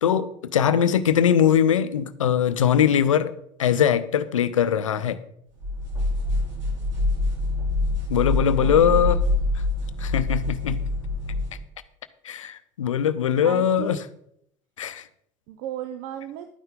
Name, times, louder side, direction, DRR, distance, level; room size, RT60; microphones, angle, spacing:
voice 1, 0.0-3.3 3.6-5.2 8.1-9.2 10.0-10.8 12.2-14.0 14.8-15.0, left 8 dB, 90° left, 14 dB, 0.6 m, -21 dB
sound 1, 5.6-11.6, left 2 dB, 80° right, 3.4 m, -25 dB
voice 2, 8.6-9.1 13.4-14.0 15.5-16.5, right 10 dB, 65° right, 8 dB, 0.8 m, -35 dB
12.0 x 9.5 x 3.8 m, 0.72 s
hypercardioid pair, 65°, 16 cm